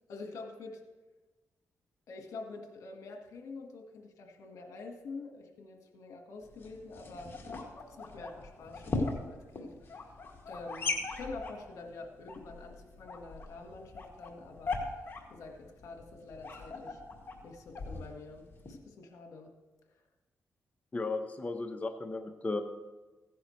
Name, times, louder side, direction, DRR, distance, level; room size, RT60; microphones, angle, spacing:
voice 1, 0.1-0.8 2.1-7.4 7.9-10.2 10.4-14.8 15.3-17.0 17.4-18.4 18.7-19.5, left 3 dB, 80° left, 3 dB, 1.5 m, -46 dB
sound 1, 6.4-18.8, left 3 dB, 45° left, 2.1 m, -40 dB
voice 2, 20.9-22.6, left 3 dB, 25° left, 5 dB, 0.9 m, -35 dB
16.0 x 10.5 x 3.2 m, 1.2 s
cardioid pair, 85°, 5 cm